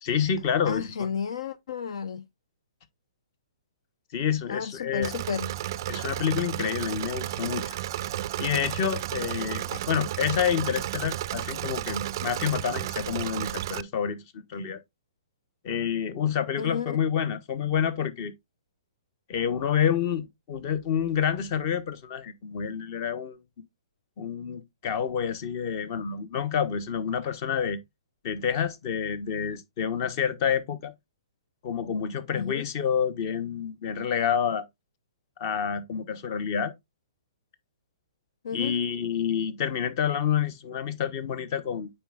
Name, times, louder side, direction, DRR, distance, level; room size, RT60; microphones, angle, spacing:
voice 1, 0.0-1.1 4.1-5.1 5.9-7.8 8.4-14.8 15.6-18.3 19.3-23.4 24.2-27.8 28.2-30.9 31.6-34.7 35.4-36.7 38.5-41.9, left 8 dB, 40° left, 1.0 m, -28 dB
voice 2, 0.6-2.3 4.5-5.5 9.7-9.8 16.6-17.0 32.3-32.7 38.4-38.8, left 6 dB, 70° left, 0.5 m, -32 dB
Engine / Mechanisms, 5.0-13.8, right 13 dB, 45° right, 0.3 m, -33 dB
9.0 x 4.4 x 2.4 m
hypercardioid pair, 140°, 3 cm